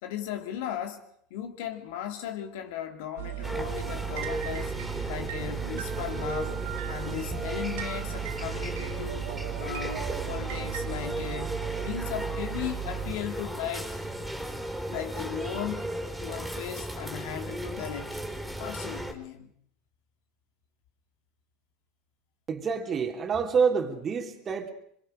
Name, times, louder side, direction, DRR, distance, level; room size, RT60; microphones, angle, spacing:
voice 1, 0.0-1.0 1.3-4.7 5.1-6.6 6.9-9.3 9.6-13.9 14.9-15.9 16.2-19.5, left 10 dB, 70° left, 2.6 m, -37 dB
sound 1, 3.2-13.1, right 15 dB, 75° right, 1.4 m, -36 dB
sound 2, 3.4-19.1, right 1 dB, 5° right, 4.1 m, -35 dB
voice 2, 22.5-24.7, right 6 dB, 35° right, 2.9 m, -27 dB
25.0 x 23.0 x 5.1 m
hypercardioid pair, 85°, 0 cm